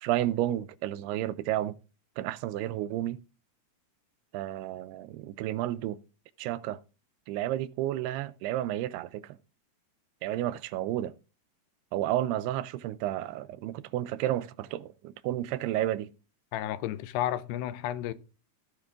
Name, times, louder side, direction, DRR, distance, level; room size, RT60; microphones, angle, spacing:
voice 1, 0.0-1.7 2.2-3.2 4.3-6.0 6.4-6.8 7.3-9.4 10.2-11.1 11.9-16.1, right 13 dB, 85° right, 2.6 m, -31 dB
voice 2, 16.5-18.1, left 12 dB, 90° left, 2.7 m, -32 dB
15.5 x 5.8 x 3.7 m
omnidirectional pair, 4.6 m